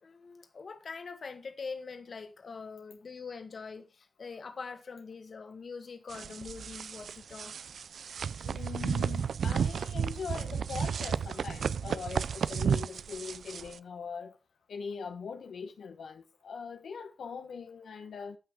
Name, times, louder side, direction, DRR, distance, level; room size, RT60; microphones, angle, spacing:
voice 1, 0.0-7.5, left 4 dB, 50° left, 1.7 m, -43 dB
sound 1, 6.1-13.8, right 7 dB, 75° right, 0.5 m, -33 dB
voice 2, 8.4-14.4 14.7-18.4, left 5 dB, 80° left, 1.2 m, -41 dB
14.0 x 5.9 x 5.0 m
wide cardioid pair, 145°, 0 cm